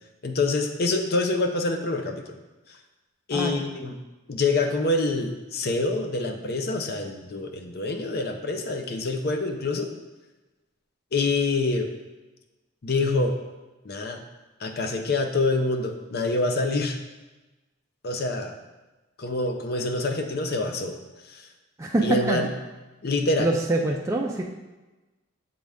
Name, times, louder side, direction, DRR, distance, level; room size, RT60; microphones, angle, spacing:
voice 1, 0.2-2.2 3.3-3.9 4.3-9.9 11.1-11.9 12.8-13.4 13.8-14.2 14.6-17.0 18.0-18.6 19.2-20.9 21.3-21.5 22.0-22.5 23.0-23.5, left 2 dB, 50° left, 5 dB, 0.6 m, -26 dB
voice 2, 3.3-3.6 21.8-22.4 23.4-24.4, right 2 dB, 15° right, -1 dB, 0.3 m, -24 dB
7.3 x 3.8 x 3.5 m, 1.1 s
head